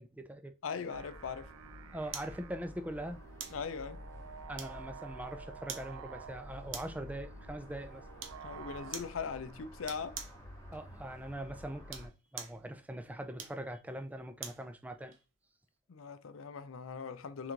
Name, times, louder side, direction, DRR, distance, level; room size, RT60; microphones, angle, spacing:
voice 1, 0.0-0.5 1.9-3.2 4.5-8.0 10.7-15.1, right 1 dB, 5° right, 0.5 m, -42 dB
voice 2, 0.6-1.5 3.5-4.0 8.4-10.2 15.9-17.5, left 6 dB, 75° left, 0.5 m, -40 dB
sound 1, 0.7-8.9, right 7 dB, 85° right, 0.4 m, -51 dB
sound 2, 0.9-12.1, left 1 dB, 15° left, 1.2 m, -51 dB
sound 3, 2.1-2.4 3.4-3.6 4.6-5.0 5.7-5.9 6.7-7.0 8.2-8.4 8.9-9.2 9.9-10.4 11.8-12.6 13.4-14.7 15.1-15.2, right 7 dB, 65° right, 0.8 m, -44 dB
3.9 x 2.6 x 4.5 m
head